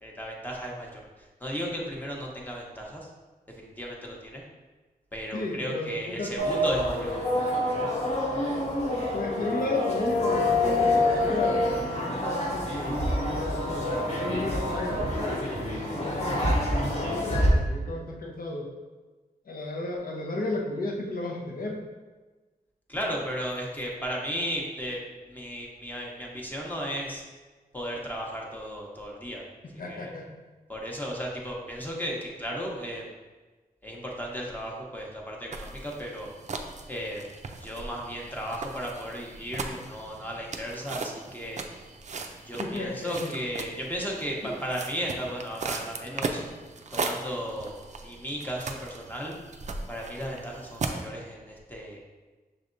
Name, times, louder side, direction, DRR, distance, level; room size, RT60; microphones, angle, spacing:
voice 1, 0.0-3.1 3.5-4.4 5.1-7.1 22.9-25.0 25.3-27.2 27.7-29.4 29.7-30.1 30.7-33.1 33.8-36.3 36.9-37.3 37.6-41.6 42.4-46.4 46.9-49.3 49.9-52.0, equal, 10° left, -2 dB, 0.8 m, -35 dB
voice 2, 5.3-6.3 9.1-18.7 19.5-21.8 29.8-30.3 42.6-43.3 44.4-44.5, left 2 dB, 65° left, -1 dB, 0.8 m, -34 dB
sound 1, 6.4-17.5, left 1 dB, 45° left, 1.2 m, -27 dB
sound 2, 35.5-51.1, right 3 dB, 50° right, 0.4 m, -38 dB
6.2 x 3.3 x 2.6 m, 1.3 s
wide cardioid pair, 110°, 16 cm